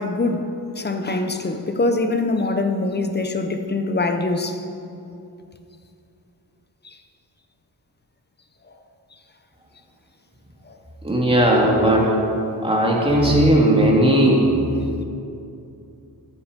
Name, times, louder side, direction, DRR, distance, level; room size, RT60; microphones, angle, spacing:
voice 1, 0.0-4.6 6.8-6.9 10.7-10.8, left 2 dB, 25° left, 6 dB, 0.9 m, -23 dB
voice 2, 11.0-12.3 12.6-14.4, right 1 dB, 15° right, -3 dB, 2.4 m, -17 dB
13.5 x 10.0 x 5.3 m, 2.7 s
wide cardioid pair, 135°, 39 cm